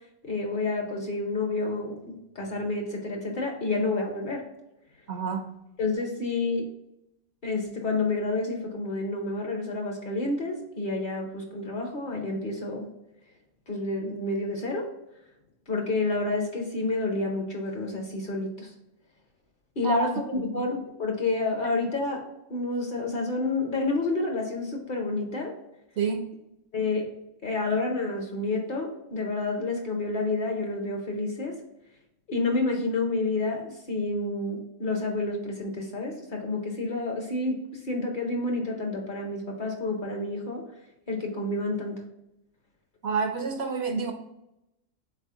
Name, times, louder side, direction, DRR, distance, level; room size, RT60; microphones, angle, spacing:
voice 1, 0.2-4.5 5.8-6.7 7.4-12.9 13.7-14.9 15.7-18.7 19.8-25.5 26.7-27.1 27.4-31.6 32.3-40.6 41.1-42.0, left 2 dB, 50° left, 2 dB, 0.7 m, -29 dB
voice 2, 5.1-5.5 19.8-20.1 26.0-26.3 43.0-44.1, right 5 dB, 65° right, 5 dB, 0.7 m, -28 dB
3.9 x 3.4 x 3.6 m, 0.88 s
omnidirectional pair, 1.3 m